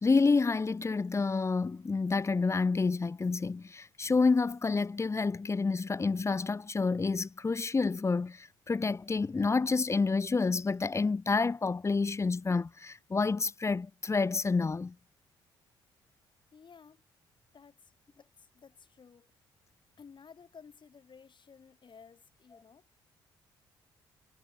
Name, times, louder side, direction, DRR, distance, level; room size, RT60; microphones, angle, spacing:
voice 1, 0.0-14.9, left 4 dB, 25° left, 0.8 m, -29 dB
voice 2, 16.5-17.0 17.5-19.3 20.0-22.9, left 6 dB, 45° left, 7.3 m, -55 dB
hypercardioid pair, 50°, 11 cm